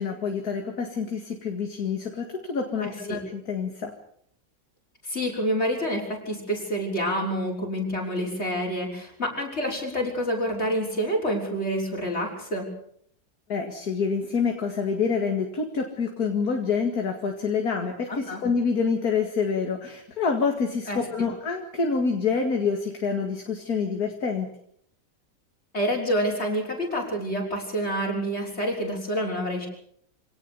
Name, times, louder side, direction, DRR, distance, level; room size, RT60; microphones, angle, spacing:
voice 1, 0.0-3.9 13.5-24.5, left 5 dB, 55° left, 3 dB, 2.6 m, -27 dB
voice 2, 2.8-3.2 5.1-12.7 18.1-18.4 20.9-21.0 25.7-29.7, equal, 35° left, -1 dB, 6.4 m, -28 dB
26.0 x 18.0 x 6.9 m, 0.66 s
omnidirectional pair, 1.9 m